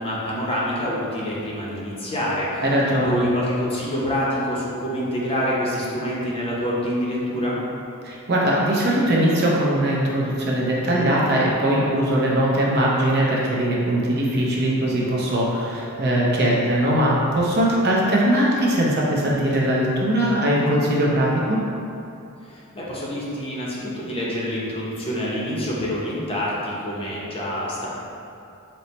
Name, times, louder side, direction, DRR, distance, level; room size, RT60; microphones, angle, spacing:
voice 1, 0.0-2.6 3.0-7.6 22.4-27.9, equal, 25° left, -6 dB, 0.7 m, -26 dB
voice 2, 2.6-3.3 8.0-21.6, right 1 dB, 50° right, -4 dB, 0.7 m, -20 dB
4.3 x 2.1 x 4.1 m, 2.7 s
head